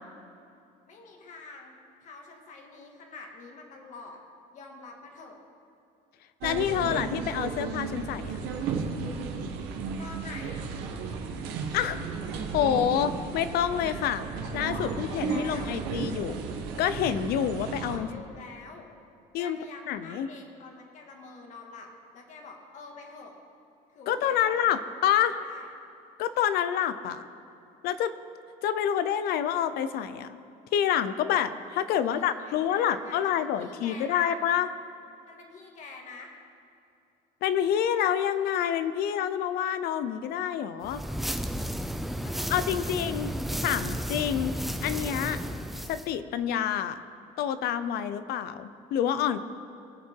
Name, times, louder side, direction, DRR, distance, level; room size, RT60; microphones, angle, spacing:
voice 1, 0.9-1.7 2.0-4.2 4.5-5.4 10.0-10.6 14.4-15.8 17.8-18.9 19.4-23.3 23.9-24.8 25.4-25.7 31.9-33.2 33.6-34.4 35.3-36.3 42.2-43.5, left 3 dB, 45° left, 2 dB, 2.1 m, -46 dB
voice 2, 6.4-8.4 11.7-12.0 12.5-14.2 14.5-16.4 16.8-18.1 19.3-19.6 19.9-20.3 24.1-25.4 26.2-27.2 27.8-28.1 28.6-30.4 30.7-34.7 37.4-41.0 42.5-43.3 43.6-44.6 44.8-45.4 45.9-47.0 47.4-49.4, left 9 dB, 70° left, 13 dB, 0.7 m, -27 dB
sound 1, 6.4-18.0, right 5 dB, 90° right, 1.6 m, -34 dB
sound 2, 40.8-46.1, equal, ahead, 0.5 m, -33 dB
21.5 x 7.6 x 4.7 m, 2.7 s
cardioid pair, 145°, 17 cm